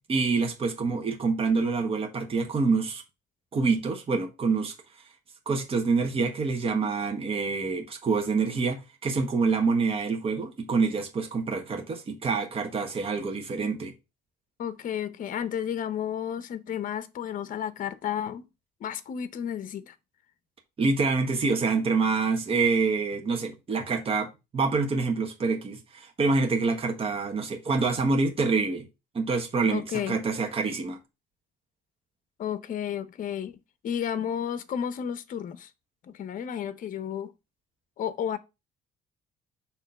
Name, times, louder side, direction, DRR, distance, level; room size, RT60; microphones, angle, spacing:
voice 1, 0.1-3.0 3.5-4.7 5.5-13.9 20.8-28.9 29.1-31.0, right 4 dB, 35° right, 1.3 m, -26 dB
voice 2, 14.6-18.4 18.8-19.9 29.7-30.2 32.4-33.6 33.8-35.7 36.1-37.3 38.0-38.4, left 9 dB, 50° left, 0.8 m, -32 dB
6.3 x 3.1 x 5.6 m
cardioid pair, 110°, 17 cm